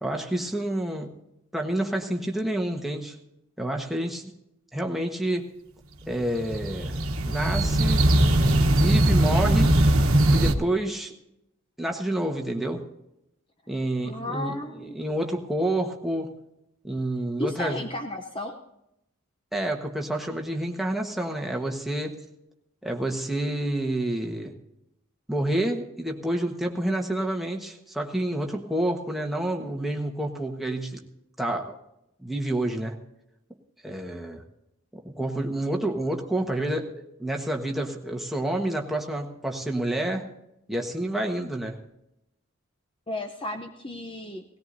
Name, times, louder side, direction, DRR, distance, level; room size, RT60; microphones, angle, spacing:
voice 1, 0.0-1.1 1.5-3.2 3.6-4.3 4.7-5.5 6.1-7.0 7.2-8.1 8.5-9.7 10.3-11.1 11.8-12.9 13.7-16.3 16.8-17.9 19.5-22.2 22.8-24.5 25.3-31.0 31.4-31.8 32.2-33.0 33.8-34.4 34.9-40.3 40.7-41.8, right 1 dB, ahead, 1 dB, 1.3 m, -28 dB
sound 1, 6.1-10.5, right 1 dB, 75° right, 1.2 m, -20 dB
voice 2, 14.0-15.0 17.4-18.6 43.1-44.4, left 1 dB, 25° left, 4 dB, 0.7 m, -34 dB
18.5 x 17.5 x 2.7 m, 0.85 s
head